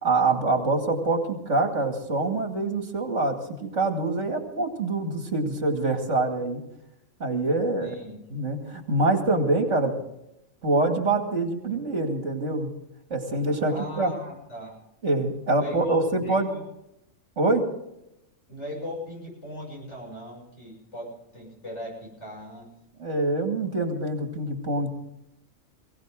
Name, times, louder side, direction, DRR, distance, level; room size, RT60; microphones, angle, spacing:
voice 1, 0.0-6.6 7.2-7.9 8.3-10.0 10.6-12.7 13.1-14.1 15.0-16.5 17.4-17.7 23.0-24.9, right 2 dB, 60° right, 4 dB, 2.7 m, -25 dB
voice 2, 7.5-8.4 13.7-14.7 15.5-16.6 18.5-22.7, left 1 dB, 55° left, -2 dB, 7.4 m, -39 dB
22.5 x 17.0 x 3.8 m, 0.83 s
omnidirectional pair, 1.4 m